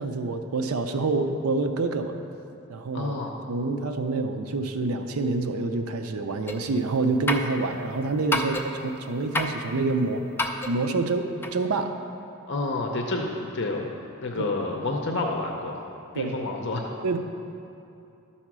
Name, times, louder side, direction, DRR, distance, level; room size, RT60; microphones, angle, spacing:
voice 1, 0.0-2.2 2.7-3.1 3.5-10.2 10.6-11.9 14.3-14.5 16.1-16.4 17.0-17.2, right 3 dB, 75° right, 7 dB, 0.5 m, -27 dB
voice 2, 2.9-3.4 12.5-13.9 14.2-15.8 16.1-16.9, left 2 dB, 50° left, 1 dB, 0.6 m, -29 dB
sound 1, 6.5-6.7 7.3-7.6 8.3-8.8 9.3-9.7 10.4-10.8 11.4-11.5, left 1 dB, 10° left, 0.3 m, -28 dB
12.0 x 4.3 x 6.0 m, 2.7 s
head